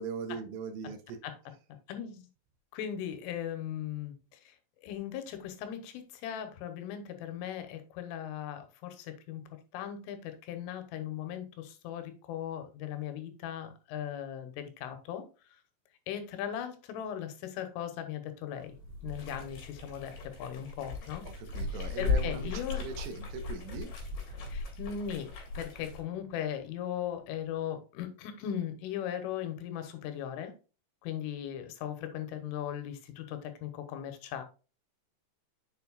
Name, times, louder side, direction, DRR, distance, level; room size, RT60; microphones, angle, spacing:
voice 1, 0.0-1.2 21.3-23.9, right 5 dB, 85° right, 3.6 m, -40 dB
voice 2, 1.9-2.3 2.7-4.6 4.8-15.2 16.1-18.8 19.0-21.2 21.7-22.9 24.5-30.5 31.0-34.4, left 10 dB, 85° left, 3.5 m, -38 dB
sound 1, 18.6-27.6, equal, 55° right, 3.0 m, -48 dB
sound 2, 19.1-26.0, left 4 dB, 55° left, 2.9 m, -37 dB
7.4 x 7.1 x 2.3 m
omnidirectional pair, 5.7 m